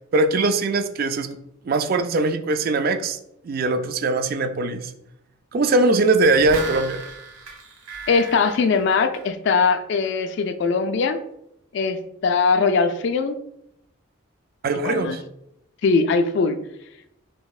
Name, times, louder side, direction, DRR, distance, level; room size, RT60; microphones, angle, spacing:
voice 1, 0.1-1.3 1.7-3.2 3.4-4.9 5.5-7.0 14.6-15.2, right 2 dB, 45° right, 8 dB, 0.3 m, -21 dB
sound 1, 6.2-9.7 10.0-10.1, right 3 dB, 80° right, 1.0 m, -36 dB
voice 2, 8.1-11.2 11.7-13.4 14.8-15.2 15.8-16.6, left 4 dB, 55° left, 8 dB, 0.3 m, -21 dB
5.3 x 2.7 x 2.3 m, 0.80 s
head